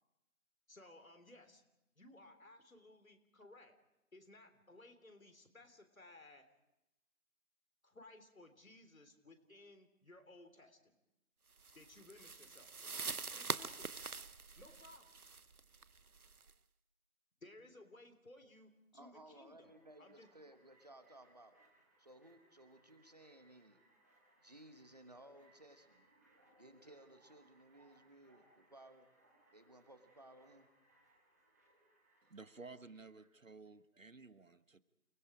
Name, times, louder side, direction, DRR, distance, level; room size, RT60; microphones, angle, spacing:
voice 1, 0.7-1.6 2.0-3.8 4.1-6.5 7.8-11.0 11.7-12.9 13.3-14.1 14.6-15.2 17.4-19.7 20.0-20.3, left 2 dB, 65° left, 7 dB, 3.6 m, -59 dB
sound 1, 11.6-16.5, right 4 dB, 85° right, 1.0 m, -44 dB
voice 2, 18.9-21.5 22.0-23.8 24.4-26.1 26.6-29.1 29.5-30.7, right 1 dB, 30° right, 8 dB, 1.4 m, -59 dB
sound 2, 19.6-32.7, right 1 dB, 10° right, 1.7 m, -71 dB
voice 3, 32.3-34.8, right 3 dB, 60° right, 13 dB, 1.3 m, -54 dB
29.5 x 20.5 x 5.0 m, 0.89 s
figure-of-eight pair, 165°, 43 cm